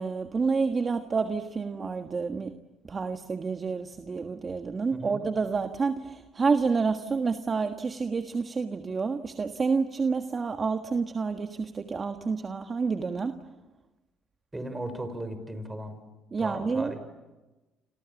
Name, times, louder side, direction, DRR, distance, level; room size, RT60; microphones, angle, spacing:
voice 1, 0.0-2.5 2.9-13.4 16.3-16.9, right 4 dB, 35° right, 7 dB, 1.5 m, -29 dB
voice 2, 14.5-16.0 16.4-17.0, right 1 dB, 15° right, 10 dB, 5.7 m, -36 dB
29.0 x 27.5 x 7.2 m, 1.1 s
supercardioid pair, 80°, 0 cm